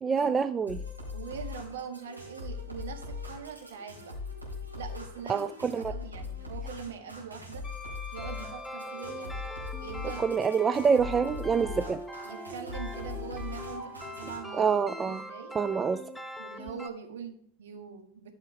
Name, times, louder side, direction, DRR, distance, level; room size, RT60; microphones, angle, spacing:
voice 1, 0.0-0.8 5.3-5.8 10.2-12.0 14.5-15.2 15.5-16.0, right 6 dB, 20° right, 11 dB, 0.4 m, -26 dB
sound 1, 0.7-14.4, left 3 dB, 90° right, 3.8 m, -41 dB
voice 2, 1.1-4.1 4.8-7.6 8.1-9.4 9.7-10.3 12.2-14.8 15.0-15.5 16.4-18.3, right 6 dB, 60° right, 4 dB, 2.0 m, -42 dB
Wind instrument woodwind instrument, 7.6-11.0, left 4 dB, 20° left, 1.2 m, -46 dB
sound 2, 8.2-16.9, equal, ahead, 0.9 m, -42 dB
12.5 x 5.7 x 5.0 m, 0.67 s
figure-of-eight pair, 90°, 0 cm